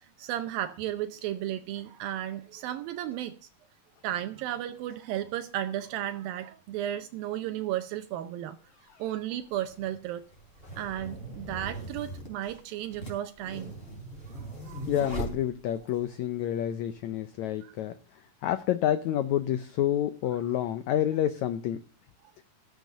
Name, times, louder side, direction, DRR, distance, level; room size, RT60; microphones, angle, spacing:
voice 1, 0.2-3.3 4.0-8.6 9.0-10.2 10.8-13.7 14.3-14.9 17.6-17.7, right 12 dB, 80° right, 2.5 m, -34 dB
sound 1, 8.6-8.7 9.6-16.0, right 2 dB, 15° left, 4.2 m, -40 dB
voice 2, 14.9-17.9 18.4-21.8, left 11 dB, 90° left, 1.6 m, -28 dB
13.5 x 8.1 x 6.5 m
omnidirectional pair, 4.2 m